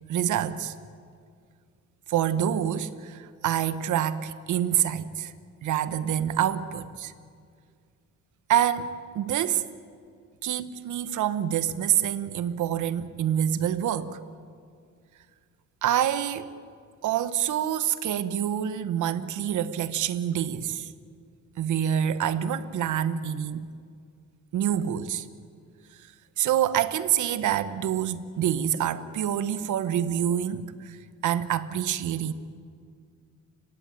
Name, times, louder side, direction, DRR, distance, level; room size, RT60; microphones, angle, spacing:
voice 1, 0.1-0.7 2.1-5.3 5.6-7.1 8.5-9.6 10.4-14.2 15.8-16.5 17.0-20.9 21.6-23.7 24.5-25.3 26.4-31.0 31.2-32.3, right 10 dB, 75° right, 1.3 m, -26 dB
30.0 x 17.5 x 9.2 m
cardioid pair, 90°, 30 cm